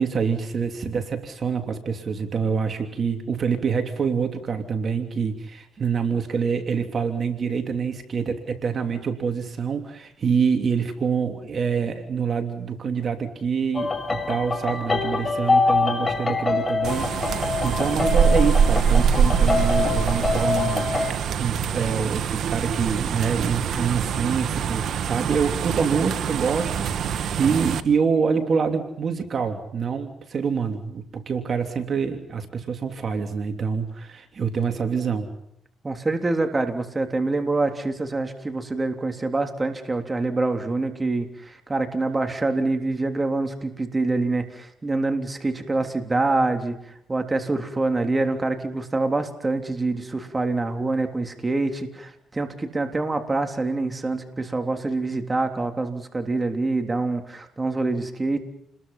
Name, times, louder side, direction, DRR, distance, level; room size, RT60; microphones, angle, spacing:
voice 1, 0.0-35.3, right 6 dB, 50° right, 6 dB, 3.1 m, -26 dB
sound 1, 13.7-21.1, left 4 dB, 25° left, 5.9 m, -25 dB
sound 2, 16.8-27.8, right 7 dB, 70° right, 1.5 m, -24 dB
voice 2, 35.8-46.8 47.1-58.4, right 2 dB, 20° right, 6 dB, 3.5 m, -25 dB
29.5 x 21.5 x 5.7 m, 0.75 s
cardioid pair, 90°, 0 cm